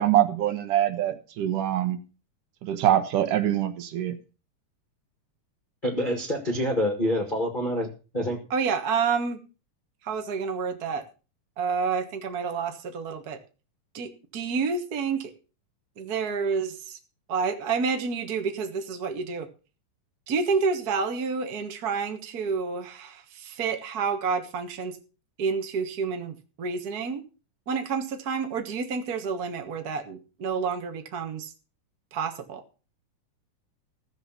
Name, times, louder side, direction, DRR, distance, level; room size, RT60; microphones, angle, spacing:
voice 1, 0.0-2.0 2.6-4.1, right 12 dB, 75° right, 2.6 m, -24 dB
voice 2, 5.8-7.9 8.1-8.4, equal, 30° left, 0.9 m, -26 dB
voice 3, 8.5-9.4 10.0-11.0 11.6-13.4 13.9-15.3 16.0-17.0 17.3-19.5 20.3-25.0 25.4-27.2 27.7-31.5 32.1-32.6, right 5 dB, 55° right, 1.0 m, -29 dB
15.0 x 7.2 x 6.0 m
omnidirectional pair, 3.8 m